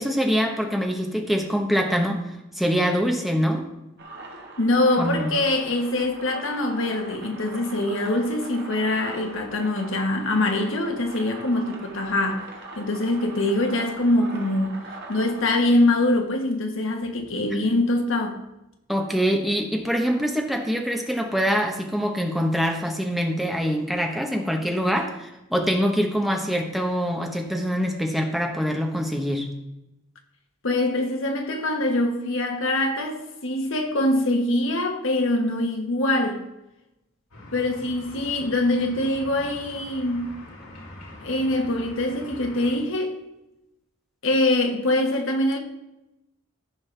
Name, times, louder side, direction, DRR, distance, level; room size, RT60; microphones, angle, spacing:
voice 1, 0.0-2.2 2.6-3.6 5.0-5.3 17.5-17.6 18.9-29.5, equal, ahead, 1.0 m, -24 dB
sound 1, 4.0-15.4, right 2 dB, 50° right, 1.6 m, -41 dB
voice 2, 4.6-12.5 12.8-14.8 15.1-18.4 30.6-36.4 37.5-40.4 41.2-43.2 44.2-45.6, left 1 dB, 65° left, 1.4 m, -24 dB
sound 2, 37.3-42.8, left 1 dB, 80° left, 2.7 m, -43 dB
14.0 x 5.6 x 3.4 m
head